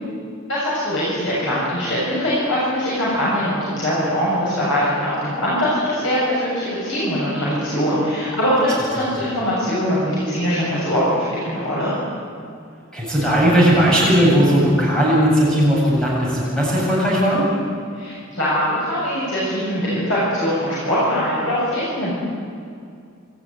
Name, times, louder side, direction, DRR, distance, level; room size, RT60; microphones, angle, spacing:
voice 1, 0.5-11.9 17.9-22.1, equal, 60° left, -8 dB, 7.4 m, -22 dB
voice 2, 12.9-17.4, equal, 5° left, -6 dB, 8.0 m, -17 dB
27.5 x 13.5 x 9.7 m, 2.3 s
head